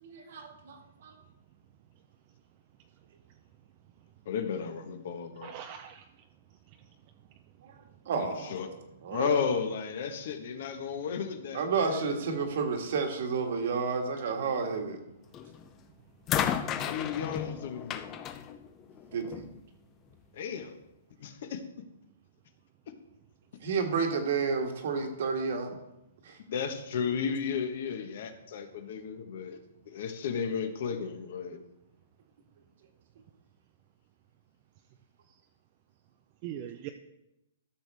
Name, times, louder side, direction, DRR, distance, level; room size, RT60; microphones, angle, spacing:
voice 1, 0.0-1.1 7.6-7.7 8.1-8.7 9.0-9.4 11.5-15.0 19.1-19.4 23.6-25.8 26.3-26.4, right 5 dB, 55° right, 4 dB, 1.6 m, -31 dB
voice 2, 4.3-5.5 8.1-8.7 9.1-12.3 16.8-18.1 20.3-20.8 21.2-21.6 26.5-29.6 29.9-31.6, left 6 dB, 55° left, 8 dB, 1.1 m, -34 dB
voice 3, 5.4-6.1 6.7-6.9 36.4-36.9, right 10 dB, 30° right, 6 dB, 0.5 m, -41 dB
sound 1, 15.3-15.7 16.3-19.5 20.6-20.7, left 9 dB, 20° left, 0.4 m, -34 dB
13.0 x 6.7 x 3.4 m, 0.91 s
hypercardioid pair, 165°, 0 cm